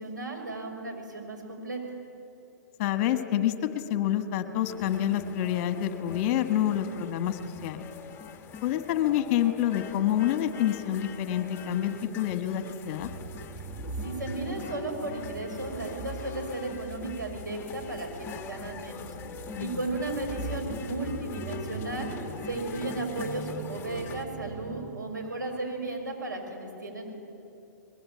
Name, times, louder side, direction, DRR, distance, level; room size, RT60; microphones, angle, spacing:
voice 1, 0.0-1.8 14.0-19.1 19.6-22.1 22.4-27.2, right 2 dB, 90° right, 1 dB, 6.3 m, -35 dB
voice 2, 2.8-7.8 8.6-13.1 19.5-19.8, left 11 dB, 40° left, 8 dB, 1.6 m, -27 dB
sound 1, 4.7-24.3, left 6 dB, 20° left, 1.5 m, -44 dB
sound 2, 13.0-25.2, right 2 dB, 10° right, 1.5 m, -41 dB
23.0 x 21.0 x 8.8 m, 2.8 s
figure-of-eight pair, 120°, 10 cm